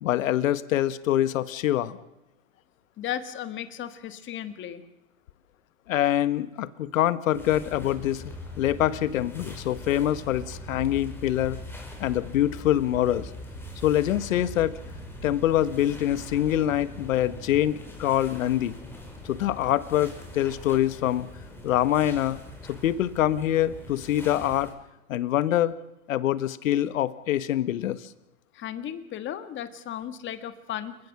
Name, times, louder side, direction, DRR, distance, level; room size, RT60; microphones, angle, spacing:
voice 1, 0.0-2.0 5.9-11.6 12.0-13.3 13.8-14.8 15.2-18.8 19.2-21.3 21.6-22.4 22.7-24.7 25.1-25.8 26.1-28.0, left 12 dB, 70° left, 14 dB, 1.5 m, -25 dB
voice 2, 3.0-4.8 28.5-31.0, left 10 dB, 30° left, 10 dB, 1.9 m, -35 dB
sound 1, 7.3-24.7, left 1 dB, 5° left, 5.0 m, -42 dB
29.5 x 17.0 x 6.1 m, 0.95 s
hypercardioid pair, 125°, 41 cm